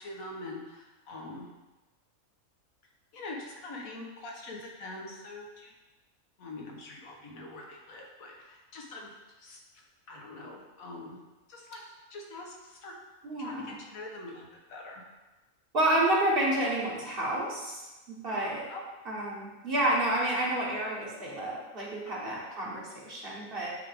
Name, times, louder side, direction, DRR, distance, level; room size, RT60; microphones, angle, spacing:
voice 1, 0.0-1.5 3.1-5.7 6.4-9.1 9.4-9.6 10.1-11.2 11.5-11.8 12.1-13.0 13.4-15.0 18.3-18.8 22.2-22.3, left 2 dB, 75° left, -1 dB, 1.5 m, -43 dB
voice 2, 13.2-13.8 15.7-17.9 18.2-18.7 19.0-23.7, right 1 dB, 45° right, -4 dB, 1.3 m, -29 dB
8.7 x 3.4 x 3.5 m, 1.1 s
omnidirectional pair, 1.5 m